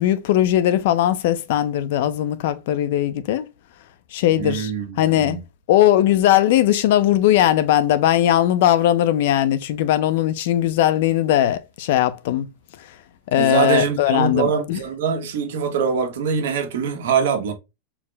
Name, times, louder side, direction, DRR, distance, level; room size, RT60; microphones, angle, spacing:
voice 1, 0.0-3.5 4.1-4.7 5.0-5.4 5.7-12.5 13.3-14.8, left 12 dB, 60° left, 0.4 m, -19 dB
voice 2, 4.4-5.4 13.4-17.5, right 6 dB, 75° right, 1.1 m, -23 dB
4.7 x 2.0 x 3.3 m
supercardioid pair, 160°, 0 cm